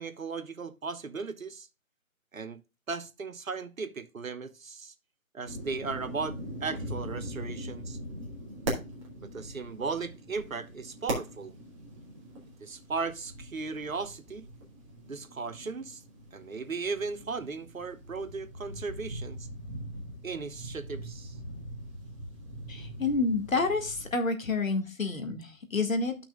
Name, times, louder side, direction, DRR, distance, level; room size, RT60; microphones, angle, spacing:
voice 1, 0.0-1.7 2.3-2.6 2.9-4.9 5.3-8.0 9.2-11.5 12.6-14.5 15.1-16.0 16.3-19.5 20.2-21.4, right 4 dB, 70° right, 1.2 m, -36 dB
sound 1, 5.5-24.1, right 1 dB, 25° right, 2.1 m, -41 dB
voice 2, 22.7-26.2, left 3 dB, 70° left, 1.9 m, -29 dB
14.0 x 6.0 x 2.3 m
figure-of-eight pair, 155°, 42 cm